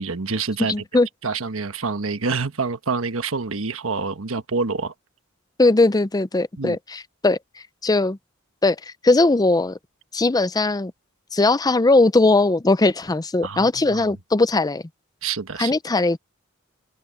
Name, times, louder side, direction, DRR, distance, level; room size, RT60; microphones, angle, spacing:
voice 1, 0.0-0.7 1.2-4.9 6.6-6.8 13.4-14.1 15.2-15.8, right 4 dB, 70° right, 1.3 m, -27 dB
voice 2, 0.7-1.1 5.6-7.4 7.8-8.2 8.6-9.8 10.1-10.9 11.3-14.8 15.6-16.2, left 2 dB, 20° left, 0.5 m, -19 dB
open air
head